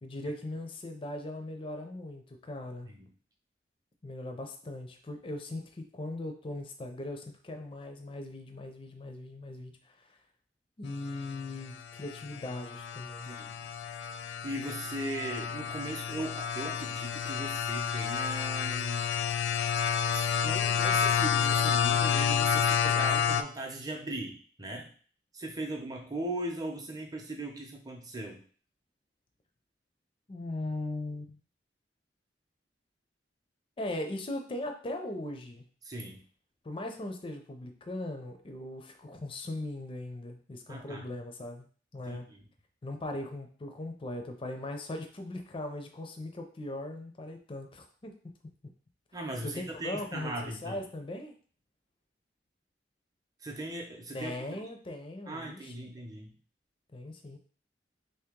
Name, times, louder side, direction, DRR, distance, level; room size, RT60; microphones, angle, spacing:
voice 1, 0.0-2.9 4.0-10.2 10.8-13.3 30.3-31.4 33.8-35.6 36.6-41.7 41.9-42.3 42.8-48.5 49.4-51.3 54.1-55.7 56.9-57.4, left 1 dB, 30° left, 5 dB, 0.5 m, -39 dB
sound 1, 11.1-23.4, left 7 dB, 90° left, 0.3 m, -30 dB
voice 2, 14.2-19.1 20.1-24.9 25.3-28.4 35.8-36.2 40.7-41.1 42.0-42.4 49.1-50.8 53.4-54.6 55.3-56.4, right 1 dB, 20° right, 2 dB, 0.6 m, -39 dB
3.2 x 2.8 x 3.6 m, 0.43 s
head